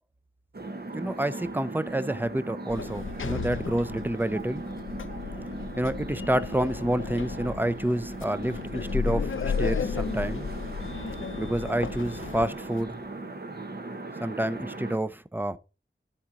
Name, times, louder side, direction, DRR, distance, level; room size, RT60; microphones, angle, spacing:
sound 1, 0.5-15.0, right 2 dB, 50° right, 1.0 m, -38 dB
voice 1, 0.9-4.6 5.8-10.5 11.4-13.0 14.2-15.6, right 1 dB, 10° right, 0.6 m, -29 dB
Sliding door, 2.7-12.8, left 5 dB, 75° left, 0.5 m, -34 dB
11.5 x 4.3 x 3.7 m
wide cardioid pair, 50°, 21 cm